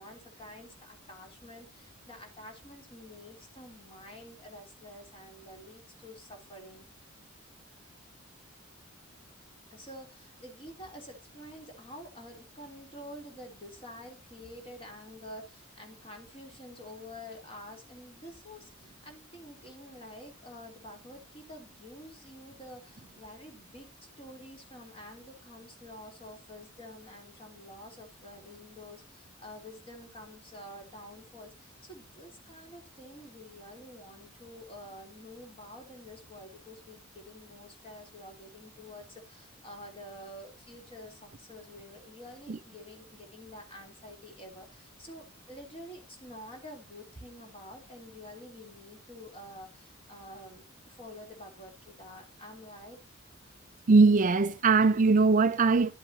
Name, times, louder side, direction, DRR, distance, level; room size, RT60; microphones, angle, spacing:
voice 1, 0.0-6.9 9.7-53.0, left 1 dB, 25° left, 3.2 m, -48 dB
voice 2, 53.9-55.9, right 4 dB, 40° right, 0.5 m, -21 dB
12.5 x 7.7 x 2.7 m
head